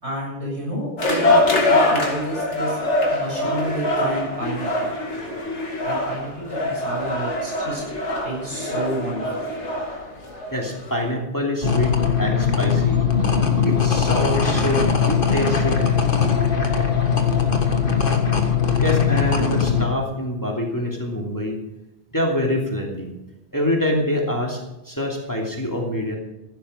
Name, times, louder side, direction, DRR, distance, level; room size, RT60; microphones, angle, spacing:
voice 1, 0.0-2.8 3.1-4.9 5.8-9.2, right 1 dB, 70° right, -3 dB, 7.8 m, -30 dB
sound 1, 1.0-11.1, left 1 dB, 90° left, 2.8 m, -23 dB
voice 2, 10.5-13.1 13.6-16.3 18.8-21.6 22.1-23.1 23.5-26.2, left 1 dB, 15° left, -1 dB, 2.7 m, -25 dB
sound 2, 11.6-19.8, left 6 dB, 50° left, 1.8 m, -20 dB
15.5 x 12.5 x 5.1 m, 0.95 s
omnidirectional pair, 1.2 m